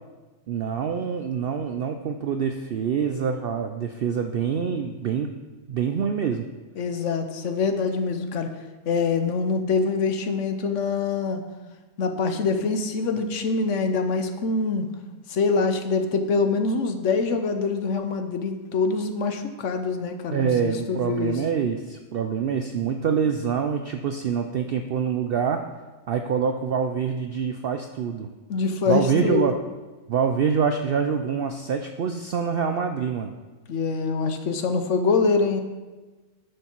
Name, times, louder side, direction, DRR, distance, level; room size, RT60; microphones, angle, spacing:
voice 1, 0.5-5.3 5.7-6.4 20.3-25.6 26.1-28.3 28.9-29.6 30.1-33.3, right 7 dB, 70° right, 6 dB, 0.5 m, -25 dB
voice 2, 6.8-8.5 8.9-11.4 12.0-14.9 15.3-21.4 28.5-29.4 33.7-35.6, left 4 dB, 65° left, 6 dB, 1.1 m, -24 dB
9.5 x 6.7 x 4.5 m, 1.2 s
omnidirectional pair, 1.5 m